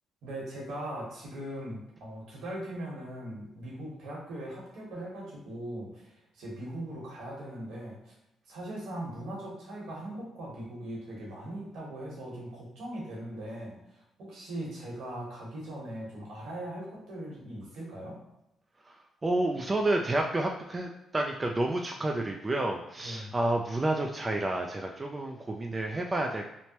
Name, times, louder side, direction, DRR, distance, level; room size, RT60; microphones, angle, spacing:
voice 1, 0.2-8.1 8.5-18.2 23.0-23.3, right 1 dB, 80° right, -4 dB, 1.2 m, -40 dB
voice 2, 18.9-26.5, right 2 dB, 25° right, 2 dB, 0.3 m, -30 dB
3.1 x 2.1 x 2.8 m, 0.85 s
cardioid pair, 90°, 0 cm